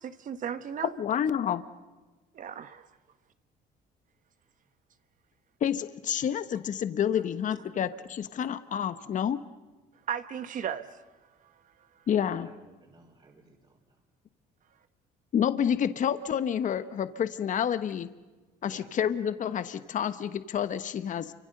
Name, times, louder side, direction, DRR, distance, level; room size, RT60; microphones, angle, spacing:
voice 1, 0.0-0.9 2.3-2.9 10.1-11.0, right 8 dB, 50° right, 11 dB, 1.2 m, -35 dB
voice 2, 1.0-1.6 5.6-9.4 12.1-12.5 15.3-18.1 18.6-21.3, left 8 dB, 50° left, 12 dB, 1.2 m, -29 dB
voice 3, 12.1-14.0 18.6-19.0, right 3 dB, 35° right, -2 dB, 4.5 m, -53 dB
28.5 x 25.5 x 6.7 m, 1.2 s
cardioid pair, 110°, 17 cm